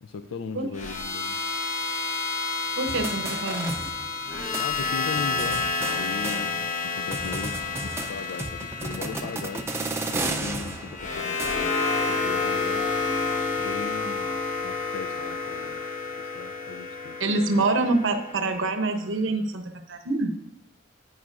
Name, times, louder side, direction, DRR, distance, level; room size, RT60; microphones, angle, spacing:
voice 1, 0.0-1.4 4.6-9.7 10.1-11.8 12.1-12.9 13.6-15.8 16.2-17.6, left 5 dB, 75° left, 8 dB, 0.4 m, -38 dB
sound 1, 0.7-18.9, left 4 dB, 40° left, 1.0 m, -30 dB
voice 2, 2.7-3.7 17.2-20.3, right 2 dB, 70° right, 5 dB, 0.7 m, -26 dB
sound 2, 2.9-4.3 4.5-4.7 5.2-6.8 7.1-11.9, right 2 dB, 15° right, 0.5 m, -34 dB
10.5 x 9.2 x 2.5 m, 0.82 s
head